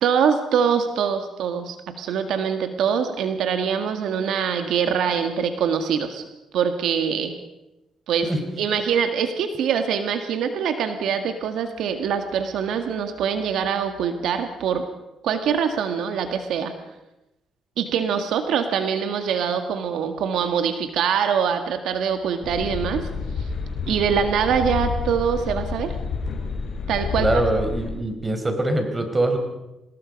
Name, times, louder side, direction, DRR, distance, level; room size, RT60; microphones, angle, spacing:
voice 1, 0.0-6.2 6.5-7.3 8.1-8.3 8.6-14.8 15.2-16.7 17.8-23.1 23.4-23.5 23.9-26.0 26.9-27.3, right 7 dB, 80° right, 7 dB, 1.8 m, -24 dB
sound 1, 22.4-27.9, left 5 dB, 65° left, 5.3 m, -29 dB
voice 2, 27.2-29.4, right 2 dB, 20° right, 5 dB, 4.7 m, -23 dB
25.5 x 19.5 x 5.3 m, 0.95 s
cardioid pair, 90°, 0 cm